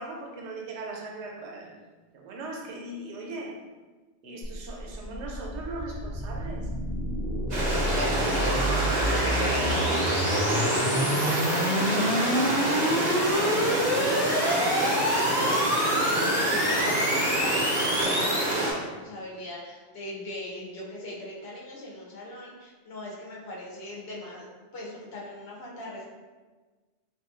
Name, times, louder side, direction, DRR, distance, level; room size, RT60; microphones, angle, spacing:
voice 1, 0.0-1.7 2.1-3.6 4.2-6.7, right 2 dB, 85° right, -1 dB, 0.9 m, -39 dB
sound 1, 4.4-18.6, equal, 40° left, 0.3 m, -28 dB
Stream, 7.5-18.7, right 1 dB, 50° right, 0.6 m, -27 dB
voice 2, 7.8-24.5 24.7-26.1, left 1 dB, 65° left, -4 dB, 0.9 m, -40 dB
3.0 x 2.5 x 2.4 m, 1.3 s
omnidirectional pair, 1.1 m